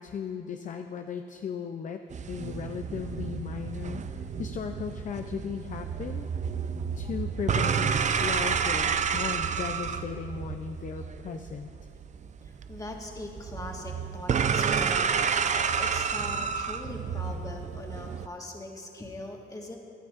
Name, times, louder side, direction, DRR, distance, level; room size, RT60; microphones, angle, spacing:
voice 1, 0.0-2.0 2.3-6.3 7.0-11.7, left 7 dB, 40° left, 6 dB, 0.5 m, -36 dB
sound 1, 2.1-18.3, right 6 dB, 35° right, 0.4 m, -30 dB
voice 2, 12.4-19.8, left 2 dB, 15° left, 0 dB, 1.5 m, -41 dB
15.5 x 11.5 x 2.5 m, 2.5 s
cardioid pair, 90°, 20 cm